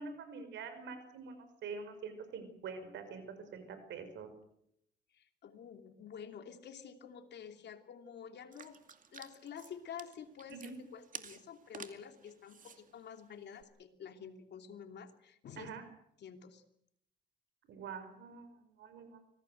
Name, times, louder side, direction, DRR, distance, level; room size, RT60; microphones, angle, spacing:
voice 1, 0.0-3.2 3.5-4.3 10.5-10.8 15.5-15.8 17.7-19.2, right 5 dB, 85° right, 9 dB, 5.5 m, -45 dB
voice 2, 5.1-8.8 9.1-15.8 16.2-16.6, left 7 dB, 70° left, 7 dB, 2.9 m, -49 dB
sound 1, 8.5-13.6, right 6 dB, 45° right, 2.4 m, -53 dB
25.5 x 18.5 x 8.0 m, 0.74 s
cardioid pair, 90°, 18 cm